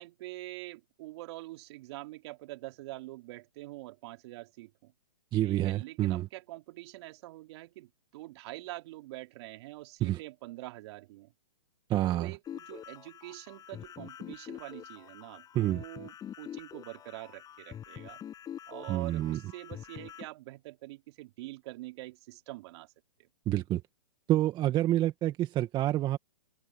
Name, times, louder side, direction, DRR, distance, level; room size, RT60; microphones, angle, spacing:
voice 1, 0.0-4.9 5.4-11.3 11.9-18.2 18.7-22.9 23.2-23.3, right 18 dB, 45° right, 3.4 m, -45 dB
voice 2, 5.3-6.3 10.0-10.2 11.9-12.3 15.5-15.8 18.9-19.4 23.5-23.8 24.3-26.2, right 14 dB, 25° right, 2.0 m, -28 dB
sound 1, 12.5-20.3, left 10 dB, 20° left, 7.1 m, -46 dB
open air
hypercardioid pair, 130°, 19 cm